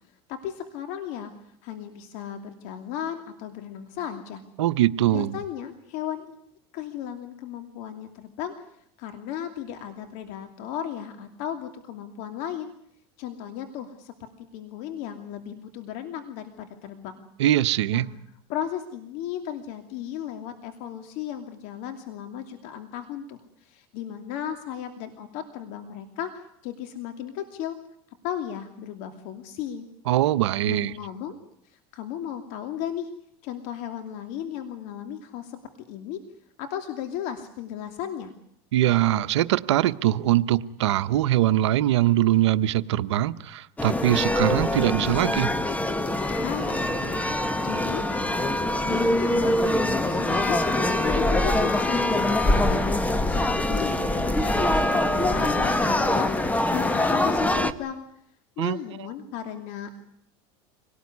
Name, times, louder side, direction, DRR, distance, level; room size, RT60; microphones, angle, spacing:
voice 1, 0.3-1.3 1.6-4.4 5.1-6.4 6.7-8.5 9.0-12.7 13.2-17.2 17.9-18.0 18.5-27.8 28.2-29.8 30.7-31.3 31.6-33.1 33.4-35.6 35.9-36.2 36.6-38.3 46.4-48.0 48.8-50.6 51.0-52.8 53.3-56.3 56.7-58.0 58.6-59.9, left 10 dB, 65° left, 2.8 m, -35 dB
voice 2, 4.6-5.4 17.4-18.1 30.1-30.9 38.7-45.5 58.6-58.8, right 13 dB, 85° right, 0.9 m, -22 dB
sound 1, 43.8-57.7, left 1 dB, 10° left, 1.6 m, -24 dB
25.5 x 18.5 x 9.6 m
supercardioid pair, 105°, 14 cm